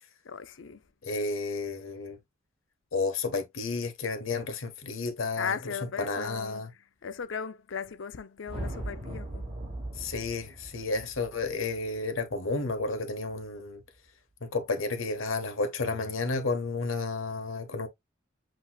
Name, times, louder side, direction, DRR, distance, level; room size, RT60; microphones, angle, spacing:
voice 1, 0.3-0.8 5.4-6.6 7.0-9.5, left 6 dB, 70° left, 0.5 m, -37 dB
voice 2, 1.0-2.2 2.9-6.7 10.0-13.8 14.4-17.9, left 3 dB, 85° left, 1.1 m, -32 dB
sound 1, 8.5-12.9, right 1 dB, 40° right, 2.6 m, -39 dB
7.7 x 3.0 x 2.2 m
head